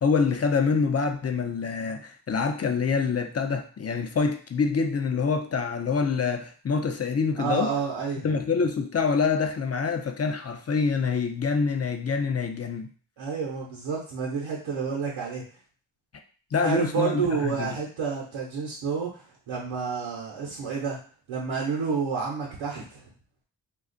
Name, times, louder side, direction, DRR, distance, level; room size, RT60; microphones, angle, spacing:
voice 1, 0.0-7.7 8.2-12.9 16.5-17.8, left 5 dB, 35° left, 6 dB, 0.6 m, -26 dB
voice 2, 7.4-8.4 13.2-15.5 16.6-21.0 21.3-23.0, right 5 dB, 85° right, -3 dB, 0.8 m, -30 dB
2.4 x 2.4 x 3.8 m, 0.41 s
supercardioid pair, 45°, 46 cm